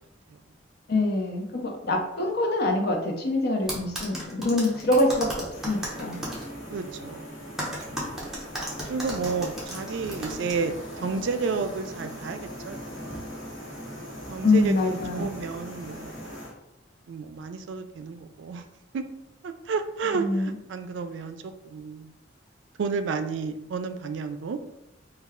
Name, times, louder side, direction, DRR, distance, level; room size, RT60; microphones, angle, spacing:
voice 1, 0.9-6.2 14.4-15.3 20.1-20.5, left 2 dB, 60° left, 1 dB, 0.7 m, -25 dB
sound 1, 3.7-6.4 7.6-10.5, right 1 dB, 5° right, 0.8 m, -34 dB
sound 2, 5.5-16.5, equal, 85° left, 1.1 m, -40 dB
voice 2, 6.7-7.3 7.9-8.0 8.9-12.8 13.2-13.3 14.3-16.3 17.1-18.6 18.9-19.1 19.4-22.1 22.8-24.8, right 5 dB, 70° right, 9 dB, 0.3 m, -31 dB
3.2 x 2.3 x 3.5 m, 0.88 s
head